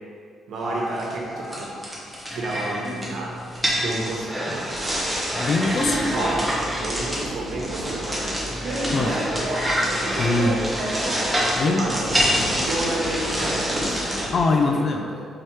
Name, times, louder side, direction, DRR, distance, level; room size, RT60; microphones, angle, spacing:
voice 1, 0.5-1.7 2.3-3.3 3.7-4.4 6.0-6.4 6.8-8.5 9.0-9.5 11.5-12.3 12.5-14.1 14.6-15.2, right 2 dB, 65° right, -3 dB, 1.2 m, -31 dB
sound 1, 0.6-14.3, equal, ahead, 1.2 m, -27 dB
voice 2, 5.3-6.0 8.9-9.1 10.2-10.6 11.6-11.9 12.4-12.5 14.3-15.0, left 3 dB, 40° left, 3 dB, 0.4 m, -22 dB
sound 2, 5.8-14.4, right 1 dB, 40° right, 1.2 m, -31 dB
4.7 x 4.3 x 4.7 m, 2.2 s
cardioid pair, 150°, 0 cm